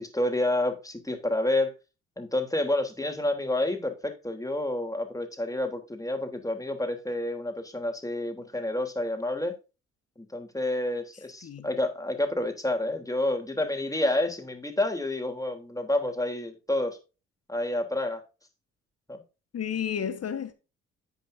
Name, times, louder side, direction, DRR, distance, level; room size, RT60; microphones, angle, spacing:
voice 1, 0.0-1.7 2.2-9.5 10.2-17.0 17.5-18.2 19.1-19.2, left 1 dB, 10° left, 3.3 m, -29 dB
voice 2, 19.5-20.5, left 8 dB, 45° left, 1.4 m, -31 dB
10.5 x 8.6 x 2.7 m
hypercardioid pair, 45°, 34 cm